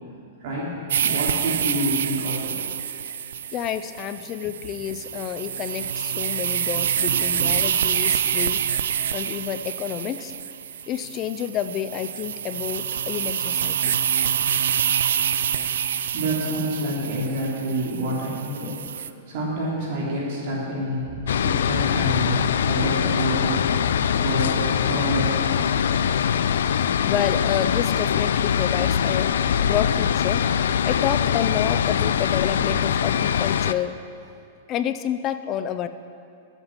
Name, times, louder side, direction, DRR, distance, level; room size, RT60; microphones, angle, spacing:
voice 1, 0.4-2.5 7.1-7.5 16.1-18.7 19.3-23.7 24.2-25.9, right 1 dB, 50° right, -5 dB, 2.9 m, -28 dB
sound 1, 0.9-19.1, right 9 dB, 85° right, 0.4 m, -26 dB
voice 2, 3.5-8.7 9.1-10.3 10.9-14.0 27.0-29.3 29.6-30.4 30.8-34.0 34.7-35.9, left 10 dB, 25° left, 11 dB, 0.5 m, -29 dB
sound 2, 21.3-33.7, left 8 dB, 85° left, 0.4 m, -22 dB
11.0 x 8.1 x 7.3 m, 2.4 s
supercardioid pair, 165°, 0 cm